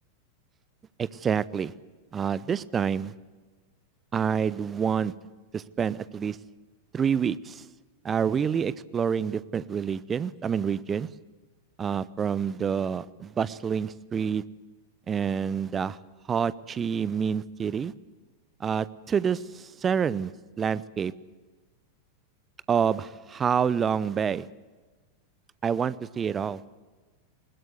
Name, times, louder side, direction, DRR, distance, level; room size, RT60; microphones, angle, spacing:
voice 1, 1.0-1.7 2.1-3.1 4.1-5.1 5.5-6.4 6.9-7.6 8.0-11.1 11.8-14.4 15.1-16.0 16.3-17.9 18.6-20.3 20.6-21.1 22.7-24.5 25.6-26.6, right 7 dB, 20° right, 19 dB, 0.7 m, -27 dB
20.5 x 20.5 x 8.2 m, 1.3 s
figure-of-eight pair, 90°, 0 cm